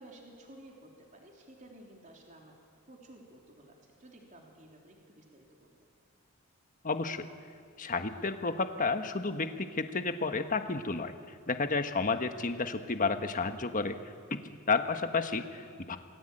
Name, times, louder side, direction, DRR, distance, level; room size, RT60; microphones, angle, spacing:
voice 1, 0.0-2.6 2.9-5.7, right 1 dB, 35° right, 0 dB, 3.4 m, -54 dB
voice 2, 6.8-7.3 7.8-11.1 11.5-14.0 14.7-16.0, left 4 dB, 40° left, 8 dB, 1.4 m, -31 dB
28.0 x 19.5 x 9.1 m, 2.4 s
head